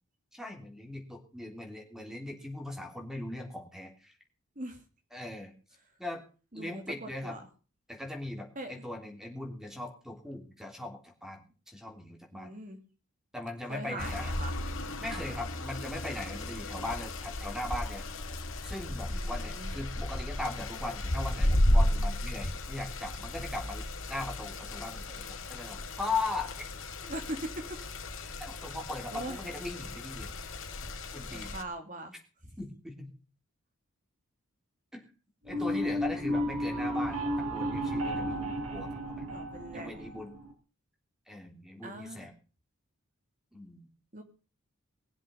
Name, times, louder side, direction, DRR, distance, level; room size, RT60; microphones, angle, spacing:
voice 1, 0.3-4.1 5.1-5.5 6.0-6.2 6.5-7.4 7.9-12.5 13.3-14.3 15.0-18.0 18.6-26.5 28.4-30.5 31.1-31.5 32.6-33.1 34.9-35.1 35.4-39.3 39.7-40.4 41.3-42.3 43.5-43.9, left 2 dB, ahead, 2 dB, 3.3 m, -39 dB
voice 2, 6.5-7.5 8.5-8.7 12.3-12.8 13.7-14.5 15.1-15.4 19.1-19.7 27.0-27.7 29.1-29.4 31.3-32.1 32.5-32.6 35.6-36.0 39.3-40.0 41.8-42.3 44.1-44.2, right 1 dB, 35° right, 6 dB, 2.6 m, -41 dB
sound 1, 14.0-31.6, left 1 dB, 60° left, 2.1 m, -34 dB
sound 2, 35.5-40.5, equal, 85° right, 4.5 m, -33 dB
21.0 x 7.6 x 7.0 m, 0.37 s
head